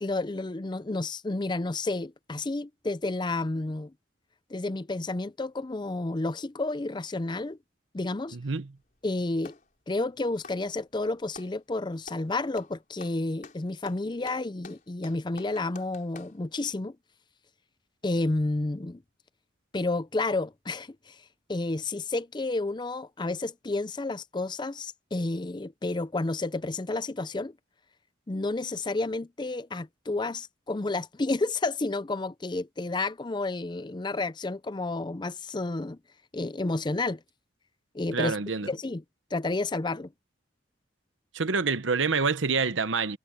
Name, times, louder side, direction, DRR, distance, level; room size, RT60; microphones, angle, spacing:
voice 1, 0.0-3.9 4.5-7.6 7.9-8.4 9.0-9.6 9.9-17.0 18.0-19.0 19.7-21.2 21.5-27.5 28.3-36.0 36.3-37.2 37.9-38.4 38.7-39.0 39.3-40.1, left 2 dB, 25° left, 0.5 m, -31 dB
voice 2, 8.3-8.7 38.1-38.7 41.3-43.2, right 4 dB, 80° right, 1.0 m, -27 dB
Clapping, 8.8-9.7 10.3-11.6 12.0-12.3 12.6-16.4, left 4 dB, 45° left, 4.5 m, -48 dB
head